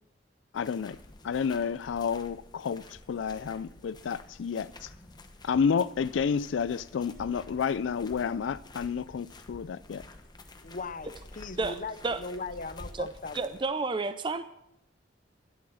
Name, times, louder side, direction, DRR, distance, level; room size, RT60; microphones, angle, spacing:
voice 1, 0.5-1.0 1.2-4.9 5.4-10.0, left 6 dB, 80° left, 0.4 m, -30 dB
sound 1, 0.5-13.6, left 2 dB, 25° left, 1.1 m, -50 dB
voice 2, 10.6-13.5, left 4 dB, 45° left, 0.8 m, -39 dB
voice 3, 13.3-14.4, right 3 dB, 25° right, 0.5 m, -30 dB
12.5 x 11.0 x 6.3 m
head